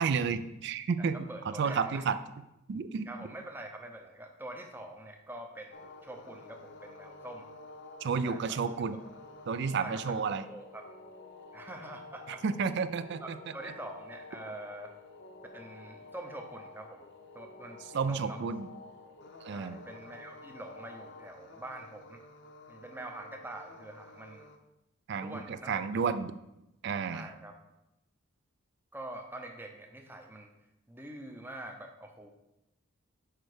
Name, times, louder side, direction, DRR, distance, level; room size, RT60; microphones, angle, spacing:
voice 1, 0.0-2.2 2.7-3.1 8.0-9.0 9.5-10.4 12.4-13.4 17.9-18.7 19.4-19.8 25.1-26.3 26.8-27.3, right 5 dB, 55° right, 13 dB, 0.3 m, -31 dB
voice 2, 1.0-2.0 3.1-7.5 8.2-8.6 9.8-10.9 11.5-12.4 13.2-14.9 15.5-17.1 17.3-18.4 19.5-22.2 22.7-24.5 25.1-26.1 27.1-27.6 28.9-30.5 30.9-32.3, right 1 dB, 10° right, 4 dB, 0.6 m, -45 dB
sound 1, 5.7-24.6, left 3 dB, 55° left, 0.7 m, -51 dB
6.4 x 4.5 x 4.9 m, 0.91 s
head